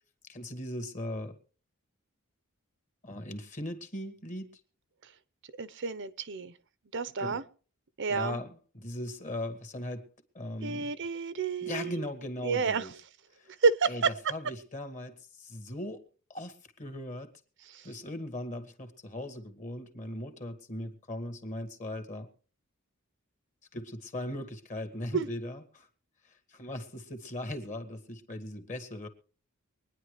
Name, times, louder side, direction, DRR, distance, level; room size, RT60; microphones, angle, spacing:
voice 1, 0.2-1.4 3.0-4.6 7.2-7.4 8.1-10.1 10.3-11.0 11.6-12.9 13.3-13.5 13.9-17.4 17.8-22.3 23.7-25.9 26.2-29.1, left 1 dB, 35° left, 8 dB, 2.1 m, -39 dB
voice 2, 5.6-6.5 6.9-7.4 8.0-8.4 10.6-11.9 12.4-12.9 13.6-14.1 17.7-17.9 25.1-25.3, right 5 dB, 60° right, 15 dB, 0.8 m, -29 dB
24.0 x 10.0 x 3.2 m, 0.41 s
head